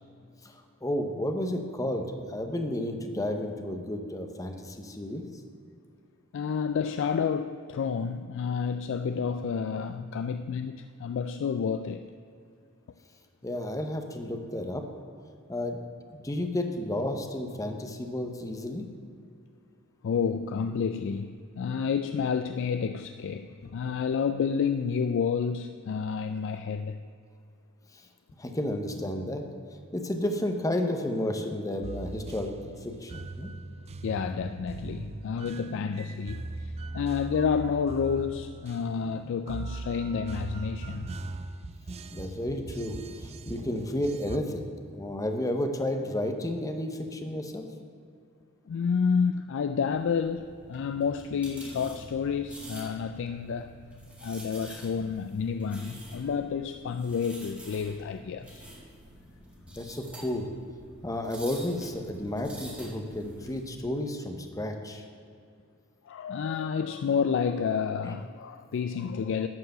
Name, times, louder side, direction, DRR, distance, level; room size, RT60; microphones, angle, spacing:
voice 1, 0.4-5.2 13.4-14.8 15.5-15.8 16.1-18.9 27.9-28.0 28.4-29.4 29.9-33.5 42.1-47.6 59.8-60.5 61.0-65.0, left 1 dB, 15° left, 5 dB, 0.8 m, -32 dB
voice 2, 6.3-12.1 20.0-27.0 34.0-41.1 48.7-53.8 54.2-58.7 66.1-69.5, left 6 dB, 60° left, 9 dB, 0.3 m, -30 dB
sound 1, 31.8-44.4, right 2 dB, 30° right, 0.4 m, -40 dB
sound 2, 49.9-63.6, right 1 dB, 5° right, 2.0 m, -48 dB
11.5 x 4.8 x 7.7 m, 2.4 s
head